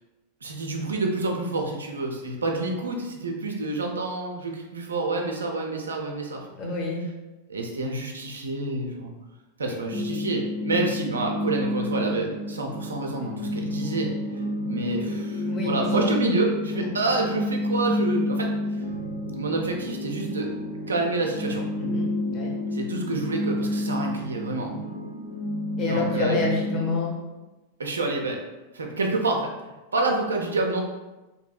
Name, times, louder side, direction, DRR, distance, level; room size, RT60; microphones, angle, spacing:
voice 1, 0.4-6.5 7.5-9.1 9.6-14.1 14.7-18.5 19.4-20.5 20.9-21.6 22.7-24.8 25.9-26.4 27.8-28.4 28.7-30.8, right 2 dB, 70° right, 1 dB, 0.4 m, -28 dB
voice 2, 6.6-7.1 15.5-16.1 16.7-16.9 21.8-22.5 25.8-27.2, left 3 dB, 35° left, -1 dB, 0.6 m, -28 dB
sound 1, 9.9-26.9, left 1 dB, 75° left, 0.5 m, -30 dB
2.6 x 2.6 x 2.3 m, 1.1 s
figure-of-eight pair, 90°, 0 cm